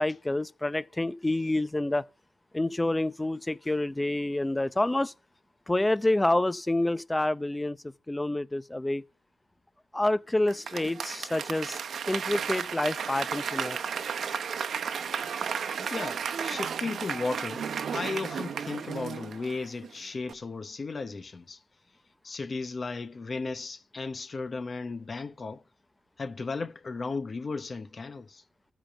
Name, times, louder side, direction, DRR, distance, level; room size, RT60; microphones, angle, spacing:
voice 1, 0.0-2.1 2.5-5.1 5.7-7.8 8.1-9.0 9.9-11.8 12.1-13.8, left 1 dB, 10° left, 0.6 m, -28 dB
Applause / Crowd, 10.5-19.9 20.3-20.4, right 7 dB, 60° right, 0.9 m, -33 dB
voice 2, 15.8-17.7 17.9-21.6 22.2-25.6 26.2-28.4, left 3 dB, 30° left, 0.9 m, -35 dB
14.5 x 5.2 x 5.7 m
wide cardioid pair, 140°, 0 cm